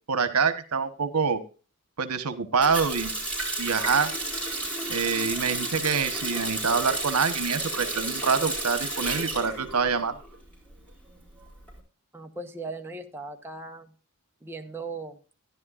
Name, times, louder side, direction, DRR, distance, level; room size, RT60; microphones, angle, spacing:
voice 1, 0.1-1.4 2.0-3.2 3.6-4.1 4.9-10.2, right 5 dB, 85° right, 11 dB, 1.2 m, -26 dB
Water tap faucet, 2.6-10.4 10.7-11.7, right 2 dB, 5° left, 4.5 m, -32 dB
voice 2, 12.1-13.9 14.4-15.2, right 3 dB, 10° right, 3 dB, 1.1 m, -38 dB
14.0 x 10.5 x 2.5 m, 0.35 s
head